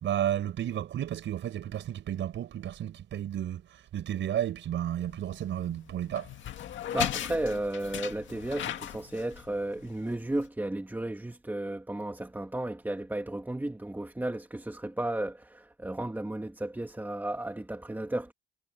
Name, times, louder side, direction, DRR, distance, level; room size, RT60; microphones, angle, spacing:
voice 1, 0.0-6.3, right 11 dB, 70° right, 4.7 m, -32 dB
sound 1, 5.0-10.4, left 11 dB, 70° left, 2.0 m, -38 dB
voice 2, 6.9-18.3, right 1 dB, 10° right, 2.2 m, -34 dB
cardioid pair, 90°, 20 cm